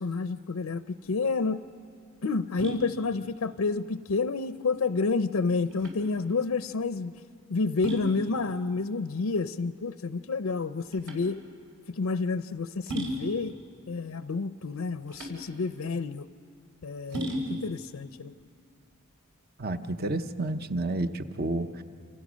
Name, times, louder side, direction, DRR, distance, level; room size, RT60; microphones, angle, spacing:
voice 1, 0.0-1.6 2.2-7.1 7.5-11.4 11.9-13.5 13.9-16.3 16.8-18.3, left 4 dB, 85° left, 11 dB, 0.6 m, -29 dB
sound 1, 1.0-19.5, right 1 dB, 70° right, 4.9 m, -39 dB
voice 2, 19.6-21.8, right 2 dB, 45° right, 9 dB, 0.9 m, -30 dB
28.0 x 27.5 x 6.3 m, 2.2 s
head